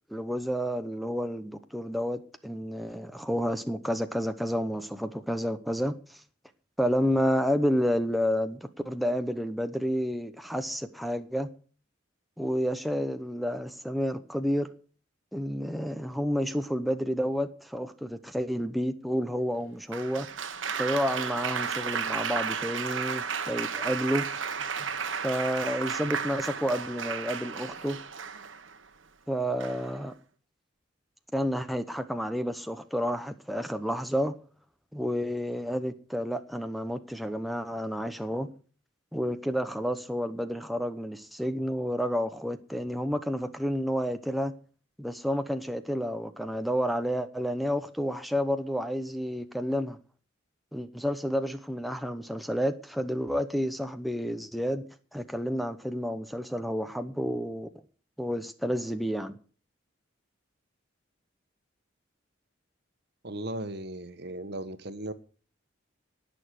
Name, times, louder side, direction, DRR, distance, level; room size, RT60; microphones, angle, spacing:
voice 1, 0.1-6.2 6.8-8.6 8.8-11.5 12.4-14.7 15.3-20.3 20.7-24.2 25.1-28.0 29.3-30.1 31.3-34.3 34.9-38.5 39.1-44.5 45.0-50.0 50.7-54.8 55.1-57.7 58.2-59.4, equal, ahead, 0.8 m, -30 dB
Applause, 19.9-28.8 29.6-30.0, right 6 dB, 75° right, 1.4 m, -33 dB
voice 2, 63.2-65.1, right 1 dB, 55° right, 1.4 m, -36 dB
18.5 x 6.9 x 6.5 m
head